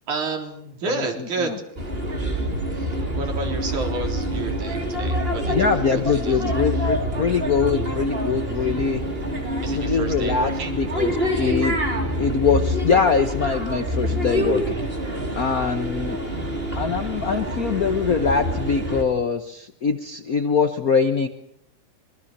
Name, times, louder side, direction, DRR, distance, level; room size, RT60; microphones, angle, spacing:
voice 1, 0.1-1.8 2.7-6.9 9.6-10.8, right 3 dB, 90° right, 2 dB, 5.3 m, -31 dB
sound 1, 1.8-19.0, equal, 20° right, 4.0 m, -26 dB
voice 2, 5.5-9.0 9.8-11.8 12.2-14.7 15.3-16.2 16.7-21.3, left 5 dB, 70° left, 8 dB, 0.8 m, -23 dB
25.5 x 24.0 x 6.7 m, 0.73 s
omnidirectional pair, 3.3 m